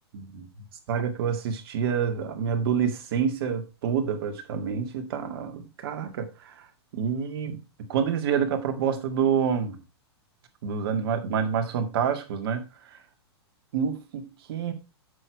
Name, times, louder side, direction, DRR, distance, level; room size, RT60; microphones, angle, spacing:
voice 1, 0.9-6.7 6.9-7.6 7.9-9.8 10.6-13.0 13.7-14.2 14.5-14.7, right 7 dB, 60° right, 2.1 m, -27 dB
7.7 x 6.6 x 4.6 m
hypercardioid pair, 110°, 14 cm